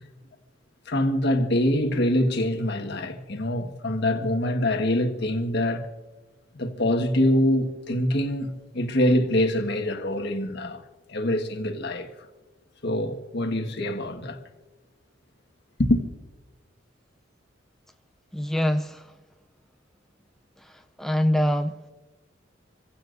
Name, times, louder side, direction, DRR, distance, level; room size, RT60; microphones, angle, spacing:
voice 1, 0.9-5.9 6.6-10.8 11.1-12.1 12.8-14.4 15.8-16.0, left 1 dB, 60° left, 1.6 m, -24 dB
voice 2, 18.3-19.0 21.0-21.9, equal, ahead, 0.5 m, -24 dB
27.5 x 16.0 x 2.6 m
head